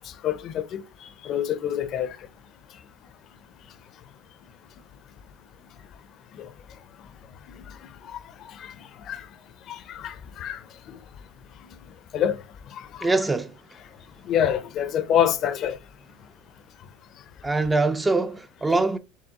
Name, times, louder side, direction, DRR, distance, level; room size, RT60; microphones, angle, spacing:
voice 1, 0.0-2.2 6.3-6.5 7.5-8.7 9.0-9.3 9.7-11.0 12.1-12.4 12.7-13.1 14.2-15.8, left 9 dB, 45° left, 0.5 m, -27 dB
voice 2, 13.0-13.5 17.4-19.0, right 3 dB, 15° right, 0.4 m, -23 dB
4.6 x 3.4 x 2.8 m
supercardioid pair, 110°, 0 cm